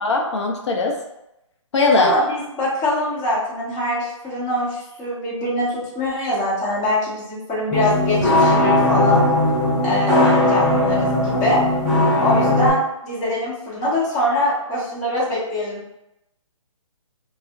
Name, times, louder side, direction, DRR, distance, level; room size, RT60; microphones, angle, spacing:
voice 1, 0.0-1.0 1.7-2.1, left 3 dB, 60° left, 2 dB, 0.5 m, -19 dB
voice 2, 2.0-5.7 5.9-9.2 9.8-11.6 12.2-15.8, left 1 dB, 15° left, -8 dB, 0.9 m, -23 dB
sound 1, 7.7-12.7, left 1 dB, 5° right, 0.4 m, -18 dB
2.4 x 2.1 x 3.5 m, 0.87 s
hypercardioid pair, 150°, 17 cm